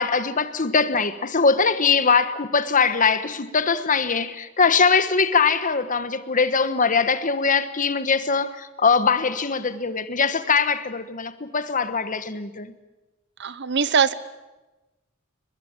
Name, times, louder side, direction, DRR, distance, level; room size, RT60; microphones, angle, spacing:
voice 1, 0.0-12.7, left 5 dB, 40° left, 1.3 m, -21 dB
voice 2, 13.4-14.1, right 6 dB, 55° right, 0.9 m, -21 dB
22.5 x 21.5 x 9.0 m
head